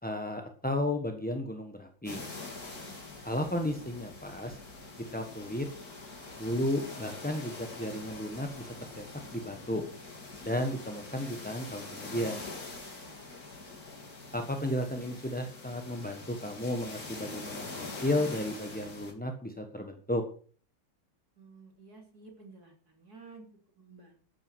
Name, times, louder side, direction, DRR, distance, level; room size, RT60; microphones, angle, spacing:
voice 1, 0.0-2.2 3.2-4.6 5.1-5.7 6.4-9.0 9.3-9.8 10.4-12.4 14.3-20.2, left 1 dB, 5° left, 4 dB, 1.0 m, -33 dB
sound 1, 2.1-19.1, left 3 dB, 45° left, 3.7 m, -44 dB
voice 2, 2.8-3.6 12.9-13.4 21.4-23.5 23.8-24.2, right 4 dB, 50° right, 2 dB, 3.4 m, -54 dB
12.5 x 9.4 x 6.3 m, 0.43 s
omnidirectional pair, 2.2 m